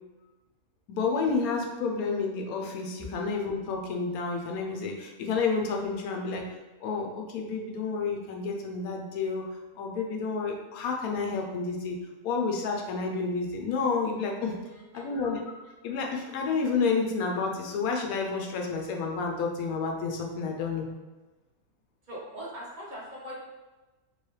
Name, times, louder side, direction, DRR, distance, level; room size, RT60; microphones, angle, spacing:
voice 1, 0.9-6.5 6.8-9.5 9.8-12.0 12.2-14.5 14.9-15.4 15.8-20.8, left 4 dB, 80° left, 2 dB, 1.1 m, -30 dB
voice 2, 14.6-15.1 22.1-23.4, equal, 35° right, -6 dB, 1.2 m, -41 dB
4.6 x 3.0 x 3.1 m, 1.2 s
omnidirectional pair, 1.5 m